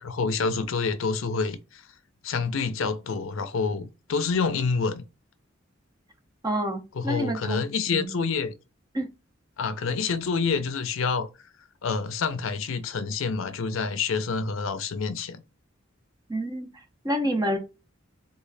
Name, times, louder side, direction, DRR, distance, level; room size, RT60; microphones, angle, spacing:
voice 1, 0.0-1.8 2.2-5.1 7.0-8.5 9.6-11.3 11.8-15.4, left 5 dB, 70° left, 0.5 m, -27 dB
voice 2, 6.4-7.6 7.9-8.2 8.9-9.1 16.3-16.7 17.0-17.6, equal, 20° right, 0.7 m, -28 dB
3.6 x 2.3 x 3.2 m
head